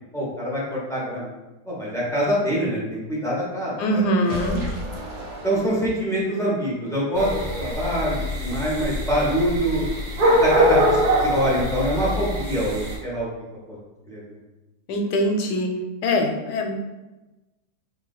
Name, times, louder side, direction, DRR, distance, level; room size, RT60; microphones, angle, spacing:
voice 1, 0.1-1.3 1.7-3.7 4.2-4.4 5.4-7.3 7.6-9.8 10.4-13.3 13.7-13.8 14.1-14.4, equal, 5° left, -6 dB, 0.5 m, -25 dB
voice 2, 3.8-4.6 14.9-15.7 16.0-16.8, equal, 75° left, 3 dB, 1.2 m, -22 dB
sound 1, 4.2-6.3, equal, 90° right, 1.3 m, -33 dB
sound 2, 7.2-12.9, equal, 65° right, 1.4 m, -23 dB
3.3 x 2.7 x 3.8 m, 1.1 s
omnidirectional pair, 1.8 m